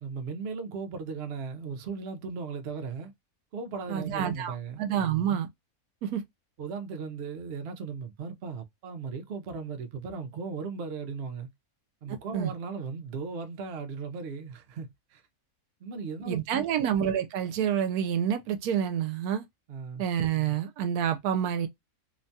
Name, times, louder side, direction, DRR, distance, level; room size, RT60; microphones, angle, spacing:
voice 1, 0.0-3.1 3.5-4.8 6.6-11.5 12.0-15.2 15.8-16.7 19.7-20.0, right 5 dB, 60° right, 0.7 m, -37 dB
voice 2, 3.9-5.5 6.0-6.2 12.3-12.5 16.2-19.4 20.0-21.7, right 9 dB, 80° right, 1.1 m, -28 dB
2.9 x 2.2 x 2.6 m
omnidirectional pair, 1.6 m